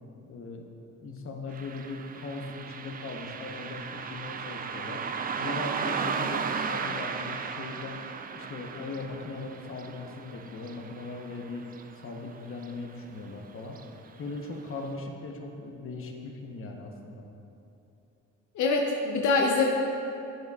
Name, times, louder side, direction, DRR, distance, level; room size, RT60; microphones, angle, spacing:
voice 1, 0.3-0.7 1.0-5.0 5.4-8.0 8.3-11.7 12.0-13.8 14.2-17.2, left 3 dB, 45° left, 2 dB, 0.9 m, -39 dB
Car passing by, 1.5-12.3 12.6-12.7 13.7-13.8 14.3-14.4 14.9-15.0, right 6 dB, 30° right, 0.4 m, -35 dB
voice 2, 18.6-19.6, left 4 dB, 70° left, 1 dB, 0.7 m, -24 dB
9.1 x 8.2 x 2.4 m, 2.9 s
cardioid pair, 90°, 30 cm